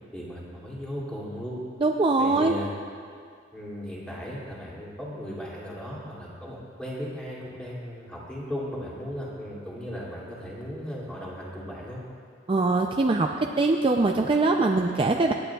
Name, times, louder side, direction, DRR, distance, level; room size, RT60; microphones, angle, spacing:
voice 1, 0.1-1.6 2.2-2.7 3.5-12.0, equal, 5° left, -7 dB, 2.5 m, -36 dB
voice 2, 1.8-2.5 12.5-15.3, right 3 dB, 30° right, 2 dB, 0.4 m, -22 dB
26.5 x 9.3 x 2.3 m, 2.3 s
head